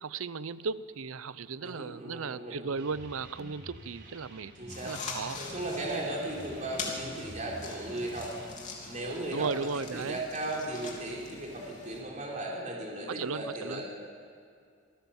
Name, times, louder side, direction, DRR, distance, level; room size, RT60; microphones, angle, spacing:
voice 1, 0.0-4.5 4.8-5.4 9.3-10.2 13.1-13.8, right 5 dB, 80° right, 16 dB, 0.6 m, -36 dB
voice 2, 1.6-2.7 4.6-4.9 5.3-8.3 8.9-13.8, right 1 dB, 35° right, -3 dB, 4.0 m, -36 dB
sound 1, 2.8-8.5, right 1 dB, 55° right, 3.9 m, -49 dB
sound 2, 4.7-12.0, left 4 dB, 35° left, 3.3 m, -43 dB
26.5 x 16.0 x 7.2 m, 2.3 s
head